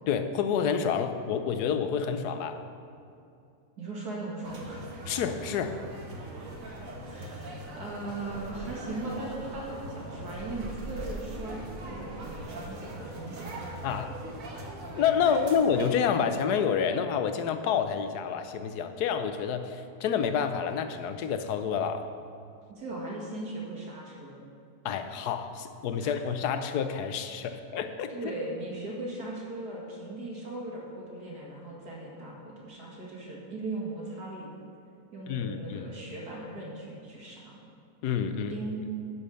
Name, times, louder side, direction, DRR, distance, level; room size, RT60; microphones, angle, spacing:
voice 1, 0.1-2.6 5.1-5.8 13.8-14.1 15.0-22.1 24.8-28.3 35.3-35.9 38.0-38.6, left 7 dB, 90° left, 8 dB, 1.2 m, -28 dB
voice 2, 3.8-4.8 7.0-13.8 22.7-24.4 26.0-26.1 28.1-34.5 35.1-37.6 38.5-38.9, right 2 dB, 85° right, -3 dB, 2.5 m, -38 dB
sound 1, 4.4-15.9, right 1 dB, 60° right, 1.6 m, -41 dB
10.5 x 5.6 x 6.4 m, 2.6 s
omnidirectional pair, 1.7 m